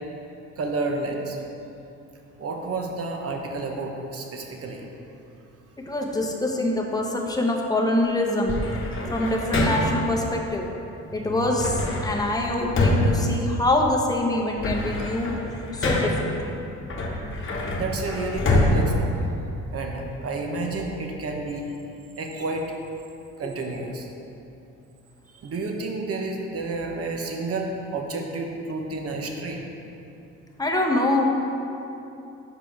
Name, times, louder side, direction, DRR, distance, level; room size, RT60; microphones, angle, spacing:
voice 1, 0.6-1.4 2.4-4.9 11.1-11.4 17.7-19.3 19.7-21.7 22.2-22.7 23.4-24.1 25.3-29.6, right 3 dB, 50° right, 2 dB, 0.9 m, -30 dB
voice 2, 5.9-8.6 9.1-10.7 11.1-15.3 15.7-16.6 30.6-31.3, left 1 dB, 10° left, 0 dB, 0.9 m, -24 dB
sound 1, 8.5-10.1 11.6-14.0 14.4-16.3 16.9-19.9, left 1 dB, 40° left, 1.1 m, -25 dB
5.0 x 4.9 x 5.8 m, 2.8 s
cardioid pair, 90°, 30 cm